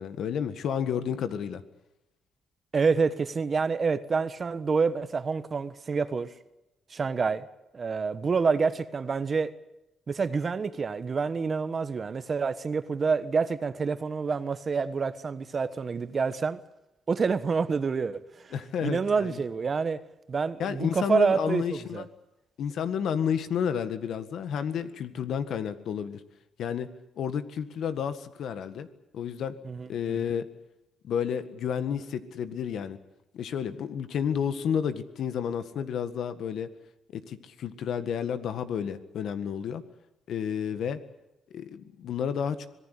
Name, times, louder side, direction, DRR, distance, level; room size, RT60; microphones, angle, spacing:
voice 1, 0.0-1.6 18.5-19.4 20.6-22.1 22.6-26.2 26.6-26.9 27.2-28.9 29.1-29.5 29.9-30.5 31.0-33.0 33.3-36.7 37.1-39.8 40.3-41.0 41.5-42.7, left 8 dB, 70° left, 1.8 m, -31 dB
voice 2, 2.7-6.3 6.9-7.5 7.7-9.5 10.1-16.6 17.1-18.5 18.8-20.0 20.3-22.1 29.6-30.3, right 5 dB, 40° right, 1.3 m, -27 dB
25.5 x 19.0 x 8.4 m
cardioid pair, 105°, 0 cm